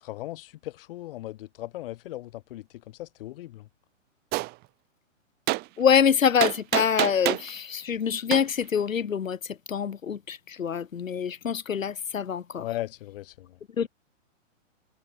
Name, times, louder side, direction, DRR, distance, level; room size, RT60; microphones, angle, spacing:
voice 1, 0.0-3.7 12.6-13.6, left 15 dB, 45° left, 2.6 m, -38 dB
Gunshot gunfire, 4.3-4.5 5.5-5.6 6.4-7.5 8.3-8.4, right 22 dB, 25° right, 1.9 m, -26 dB
voice 2, 5.8-12.7 13.8-13.9, left 7 dB, 90° left, 2.0 m, -25 dB
hypercardioid pair, 145°, 38 cm